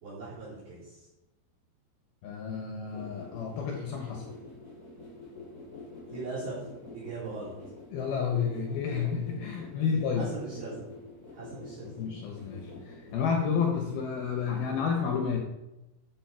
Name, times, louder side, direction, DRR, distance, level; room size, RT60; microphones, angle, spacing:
voice 1, 0.0-1.1 6.1-6.7 6.9-7.6 8.9-9.1 10.1-10.9 11.3-11.9, right 3 dB, 50° right, -10 dB, 5.2 m, -39 dB
voice 2, 2.2-4.2 7.9-10.3 12.0-15.4, left 6 dB, 75° left, 2 dB, 2.3 m, -30 dB
sound 1, 2.8-14.8, left 2 dB, 20° left, 2.8 m, -47 dB
13.0 x 7.3 x 4.7 m, 0.99 s
omnidirectional pair, 5.7 m